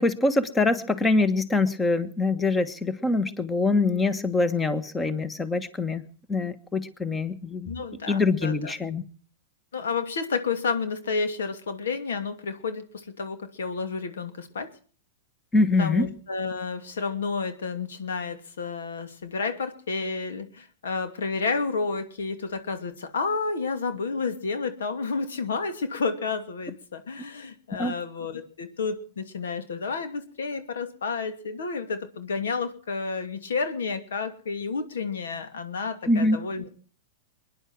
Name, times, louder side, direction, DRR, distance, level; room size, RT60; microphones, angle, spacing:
voice 1, 0.0-6.0 6.3-7.7 8.1-9.0 15.5-16.1 27.8-27.9 36.1-36.4, left 3 dB, 10° left, 14 dB, 1.3 m, -24 dB
voice 2, 7.6-8.7 9.7-14.7 15.8-36.7, left 4 dB, 85° left, 8 dB, 2.6 m, -31 dB
22.5 x 10.5 x 6.1 m, 0.43 s
hypercardioid pair, 130°, 0 cm